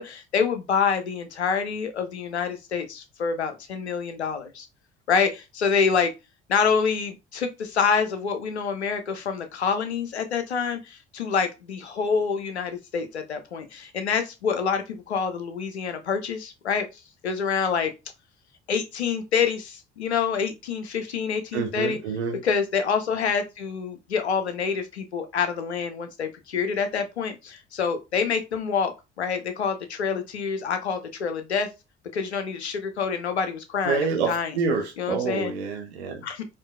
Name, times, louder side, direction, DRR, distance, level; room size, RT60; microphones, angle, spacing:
voice 1, 0.0-4.7 5.1-6.1 6.5-16.9 17.2-17.9 18.7-22.0 22.4-31.7 32.1-34.5 35.0-35.5 36.2-36.5, left 6 dB, 85° left, 0.6 m, -27 dB
voice 2, 21.5-22.4 33.8-36.2, right 5 dB, 80° right, 0.7 m, -27 dB
4.4 x 2.6 x 2.2 m
figure-of-eight pair, 55°, 32 cm